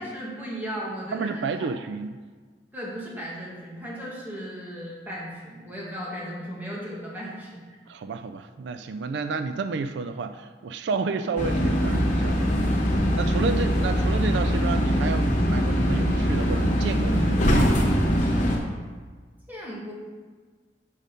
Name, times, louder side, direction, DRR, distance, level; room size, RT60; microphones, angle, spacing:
voice 1, 0.0-1.7 2.7-7.6 19.5-19.9, equal, 10° right, -5 dB, 1.7 m, -36 dB
voice 2, 1.1-2.2 7.9-12.5 13.2-17.8, right 4 dB, 80° right, 9 dB, 0.3 m, -31 dB
sound 1, 11.4-18.6, equal, 45° left, 1.2 m, -22 dB
6.3 x 5.2 x 5.2 m, 1.5 s
head